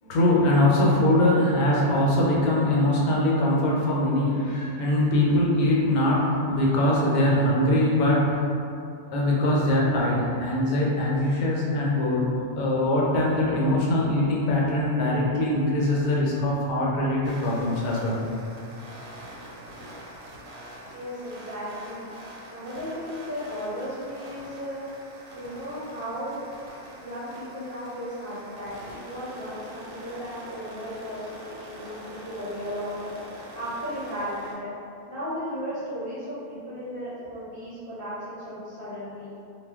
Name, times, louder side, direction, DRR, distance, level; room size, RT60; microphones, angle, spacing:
voice 1, 0.0-8.4 9.1-12.3 12.6-18.2, left 1 dB, 75° left, -4 dB, 1.1 m, -22 dB
sound 1, 17.2-34.5, right 1 dB, 85° right, 1.2 m, -44 dB
voice 2, 20.9-22.1 22.5-24.8 25.3-26.4 27.0-33.1 33.5-34.7 35.1-39.3, equal, 45° right, -12 dB, 0.7 m, -35 dB
2.5 x 2.1 x 3.4 m, 2.5 s
omnidirectional pair, 1.6 m